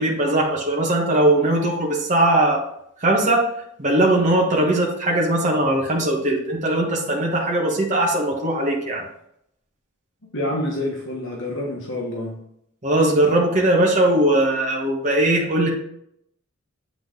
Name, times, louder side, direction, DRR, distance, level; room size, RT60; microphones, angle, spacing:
voice 1, 0.0-2.6 3.0-3.5 3.8-9.0 12.8-15.7, right 1 dB, 35° right, -2 dB, 1.1 m, -20 dB
voice 2, 10.3-12.3, left 1 dB, 55° left, -2 dB, 1.3 m, -27 dB
7.8 x 3.7 x 3.7 m, 0.73 s
head